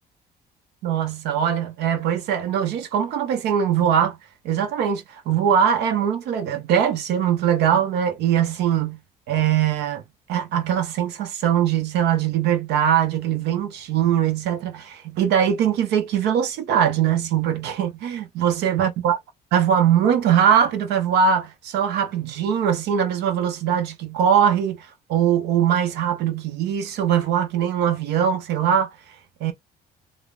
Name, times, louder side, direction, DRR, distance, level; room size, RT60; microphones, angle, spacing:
voice 1, 0.8-4.2 4.4-9.0 9.3-10.0 10.3-19.2 19.5-28.9 29.4-29.5, right 8 dB, 80° right, 0.7 m, -21 dB
3.2 x 2.0 x 2.4 m
cardioid pair, 110°, 17 cm